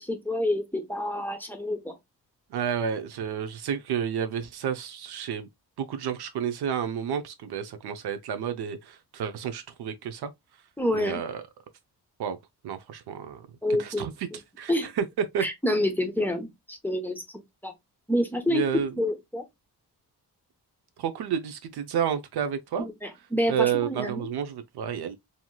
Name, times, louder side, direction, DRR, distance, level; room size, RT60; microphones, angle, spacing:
voice 1, 0.0-1.9 10.8-11.2 13.6-14.1 14.7-14.9 15.4-17.2 17.6-17.7 18.1-19.4 22.8-24.2, left 1 dB, 5° left, 0.8 m, -28 dB
voice 2, 2.5-5.5 5.8-10.3 10.9-11.4 12.2-12.4 12.6-13.5 13.8-14.3 14.6-15.4 18.5-18.9 21.0-22.9 23.5-25.1, right 8 dB, 75° right, 0.6 m, -30 dB
2.9 x 2.7 x 2.2 m
cardioid pair, 70°, 39 cm